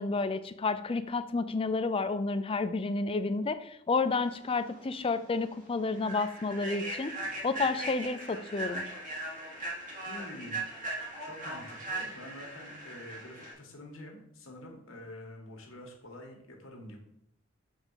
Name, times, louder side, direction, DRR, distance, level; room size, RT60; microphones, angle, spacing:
voice 1, 0.0-7.1 7.4-8.8, left 3 dB, 25° left, 10 dB, 0.4 m, -30 dB
Human voice / Train, 4.7-4.8 5.2-5.4 5.9-13.5, right 1 dB, 40° right, 1.5 m, -39 dB
voice 2, 10.0-10.6 11.2-17.0, left 1 dB, 75° left, 1 dB, 1.5 m, -47 dB
7.1 x 3.6 x 5.6 m, 0.73 s
head